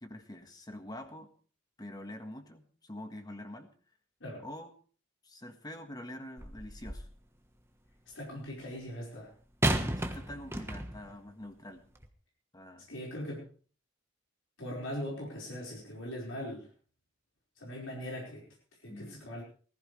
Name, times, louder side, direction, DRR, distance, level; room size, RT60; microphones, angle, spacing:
voice 1, 0.0-1.3 1.8-3.7 4.4-4.7 5.2-7.1 10.0-11.9 12.5-12.9 18.9-19.2, left 1 dB, 20° left, 6 dB, 1.6 m, -45 dB
sound 1, 6.4-7.2 9.6-11.1 11.9-12.1, right 1 dB, 15° right, 1.3 m, -33 dB
voice 2, 8.1-9.3 12.9-13.5 14.6-16.7 17.6-18.4 18.8-19.4, equal, 75° left, -3 dB, 5.0 m, -40 dB
19.5 x 14.5 x 3.3 m, 0.41 s
head